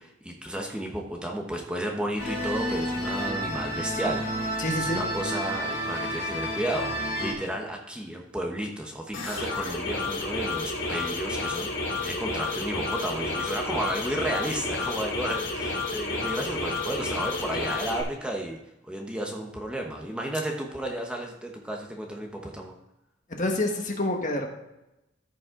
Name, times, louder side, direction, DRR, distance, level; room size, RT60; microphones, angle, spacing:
voice 1, 0.0-4.6 4.9-18.6 18.8-22.7, right 1 dB, 5° right, 1 dB, 1.0 m, -33 dB
sound 1, 2.2-7.3, equal, 65° left, 3.6 m, -30 dB
voice 2, 4.6-5.0 23.4-24.5, left 1 dB, 45° left, 2 dB, 1.4 m, -27 dB
sound 2, 9.1-18.0, left 3 dB, 90° left, 2.7 m, -31 dB
14.5 x 5.4 x 3.7 m, 0.93 s
head